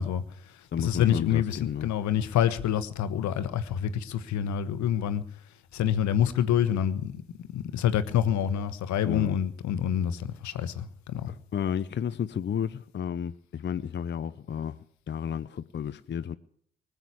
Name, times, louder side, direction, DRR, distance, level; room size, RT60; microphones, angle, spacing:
voice 1, 0.0-5.2 5.7-7.2 7.5-11.3, left 9 dB, 65° left, 1.1 m, -27 dB
voice 2, 0.7-1.9 9.0-9.4 11.3-14.8 15.1-16.4, left 8 dB, 40° left, 0.6 m, -32 dB
20.0 x 8.0 x 8.4 m
hypercardioid pair, 45°, 30 cm